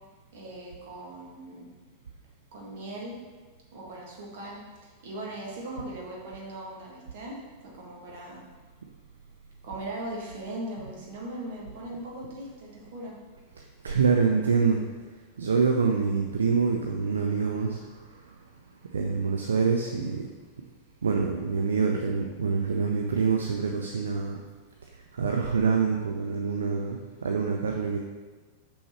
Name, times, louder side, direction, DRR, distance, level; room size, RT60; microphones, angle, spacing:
voice 1, 0.3-1.7 2.5-3.1 3.7-8.4 9.6-13.1, right 1 dB, 55° right, -3 dB, 1.8 m, -39 dB
voice 2, 13.8-14.8 15.4-17.8 18.9-20.2 21.0-24.4 25.2-28.0, right 5 dB, 70° right, 2 dB, 0.5 m, -25 dB
6.2 x 6.0 x 3.2 m, 1.4 s
figure-of-eight pair, 90°, 0 cm